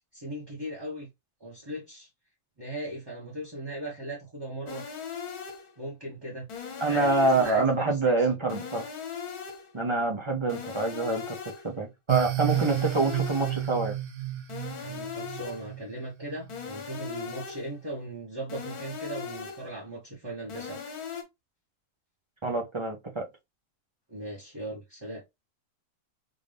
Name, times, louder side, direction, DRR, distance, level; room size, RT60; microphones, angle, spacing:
voice 1, 0.1-1.1 1.4-2.1 2.6-4.8 5.8-6.5 6.9-8.3 14.7-20.8 24.1-25.2, right 1 dB, 20° right, 1.0 m, -38 dB
sound 1, 4.7-5.8 6.5-7.8 8.5-9.8 10.5-11.8 12.5-13.8 14.5-15.8 16.5-17.8 18.5-19.8 20.5-21.2, left 7 dB, 75° left, 1.6 m, -39 dB
voice 2, 6.8-8.9 9.7-11.4 11.6-14.0 22.4-23.2, right 3 dB, 35° right, 0.4 m, -26 dB
sound 2, 12.1-16.6, right 13 dB, 70° right, 1.2 m, -32 dB
3.9 x 2.6 x 3.3 m
omnidirectional pair, 1.6 m